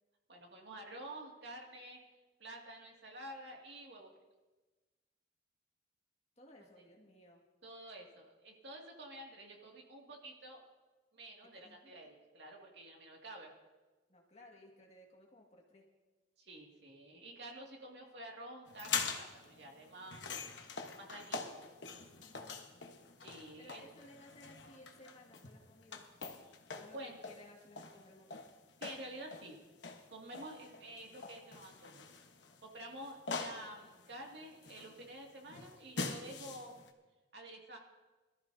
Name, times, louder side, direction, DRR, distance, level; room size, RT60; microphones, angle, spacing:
voice 1, 0.3-2.0 2.4-4.1 7.6-10.6 11.1-13.5 16.4-20.3 21.0-21.6 23.2-23.8 26.9-27.2 28.8-29.6 30.1-32.0 32.6-36.9 37.3-37.8, right 1 dB, 60° right, 0 dB, 2.3 m, -50 dB
voice 2, 6.4-7.4 11.5-11.9 14.1-15.8 22.2-23.0 23.6-26.1 26.7-28.4, left 1 dB, 35° left, -1 dB, 1.9 m, -59 dB
sound 1, 18.7-36.9, left 5 dB, 60° left, 1.2 m, -44 dB
21.5 x 13.5 x 2.8 m, 1.2 s
head